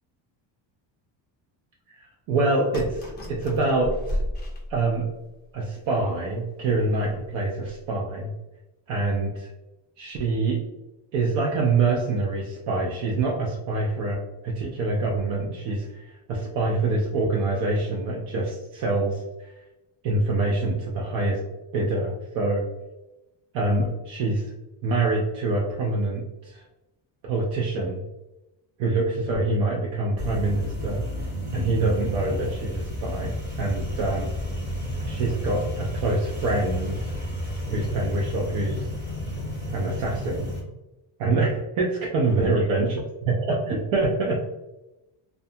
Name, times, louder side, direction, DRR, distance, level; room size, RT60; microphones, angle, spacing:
voice 1, 2.0-4.2 4.7-5.1 5.5-8.3 8.9-9.5 10.0-10.6 11.1-14.2 14.4-19.6 20.0-21.4 21.7-22.6 23.5-24.4 24.8-26.6 27.2-28.0 28.8-31.0 31.5-34.3 35.0-37.1 37.7-38.8 39.7-40.5 41.2-42.9 43.7-44.4, right 2 dB, 70° right, -2 dB, 0.6 m, -25 dB
sound 1, 2.7-5.3 5.8-5.9 6.2-6.3 6.9-7.2 7.6-7.8, equal, 25° left, 0.3 m, -33 dB
sound 2, 30.2-40.6, equal, 20° right, 0.8 m, -32 dB
2.4 x 2.3 x 2.7 m, 0.99 s
cardioid pair, 175°, 47 cm